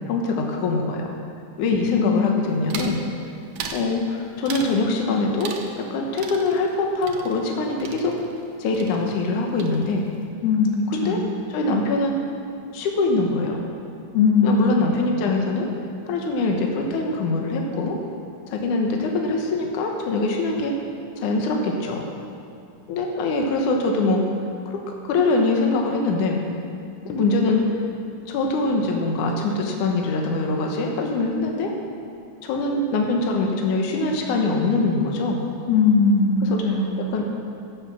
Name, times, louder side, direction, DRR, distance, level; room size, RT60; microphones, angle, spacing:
voice 1, 0.1-1.0 1.6-3.0 3.7-5.5 5.8-8.2 8.6-10.0 10.9-11.2 11.5-12.2 12.7-13.6 14.4-15.7 16.1-18.0 18.5-20.8 21.2-22.1 22.9-24.2 24.7-24.8 25.0-26.4 27.0-27.6 28.3-31.7 32.4-35.4 36.5-36.6 37.1-37.2, left 3 dB, 70° left, 1 dB, 2.5 m, -23 dB
voice 2, 1.9-2.5 10.4-10.7 11.0-11.2 14.1-14.7 35.7-36.9, left 5 dB, 85° left, 0 dB, 3.3 m, -19 dB
sound 1, 2.7-3.0 3.6-3.9 4.5-4.8 5.4-5.9 6.2-8.5 8.7-9.3 9.6-10.1, right 6 dB, 70° right, 2.2 m, -37 dB
16.0 x 7.4 x 7.0 m, 2.4 s
omnidirectional pair, 4.0 m